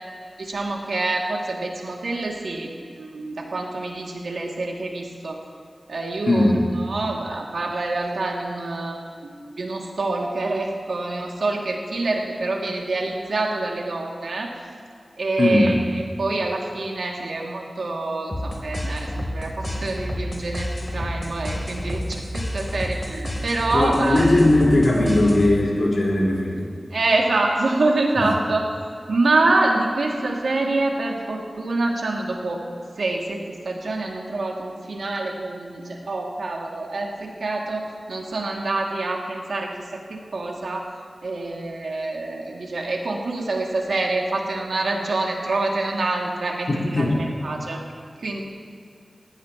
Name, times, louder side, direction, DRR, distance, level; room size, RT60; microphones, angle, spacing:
voice 1, 0.4-2.7 3.0-5.4 5.9-14.5 15.2-15.7 16.2-24.3 26.9-28.7 29.1-32.6 33.0-40.9 41.2-47.8 48.2-48.4, right 2 dB, 85° right, -1 dB, 2.3 m, -26 dB
voice 2, 6.3-6.7 15.4-15.8 23.7-26.7 28.2-28.3 46.7-47.2, left 1 dB, 70° left, -5 dB, 4.1 m, -19 dB
sound 1, 18.3-25.7, equal, 35° left, 3.3 m, -30 dB
21.0 x 15.5 x 3.0 m, 2.4 s
cardioid pair, 55°, 0 cm